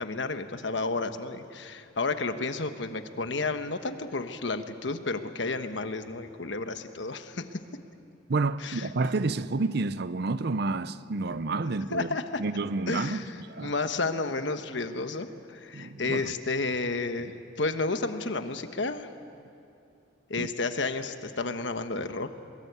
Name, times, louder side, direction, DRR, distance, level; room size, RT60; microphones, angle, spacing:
voice 1, 0.0-7.6 8.6-8.9 11.9-12.4 12.9-19.1 20.3-22.3, left 3 dB, 70° left, 1.3 m, -31 dB
voice 2, 8.3-13.2 13.5-13.7 15.7-16.3 20.4-20.5, right 3 dB, 60° right, 0.6 m, -29 dB
22.5 x 22.5 x 8.2 m
head